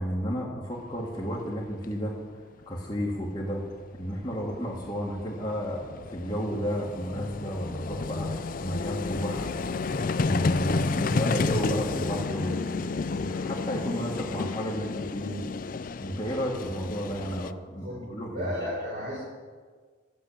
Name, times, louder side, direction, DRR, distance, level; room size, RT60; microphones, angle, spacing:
voice 1, 0.0-2.1 2.7-9.5 10.0-15.4 16.0-18.5, equal, 20° left, -7 dB, 2.0 m, -32 dB
Vehicle, 1.4-1.5 1.7-1.9 3.8-3.9 4.1-17.5, left 4 dB, 45° left, 0.4 m, -31 dB
voice 2, 17.8-19.2, left 1 dB, 55° right, -7 dB, 4.1 m, -34 dB
13.0 x 7.5 x 8.7 m, 1.5 s
head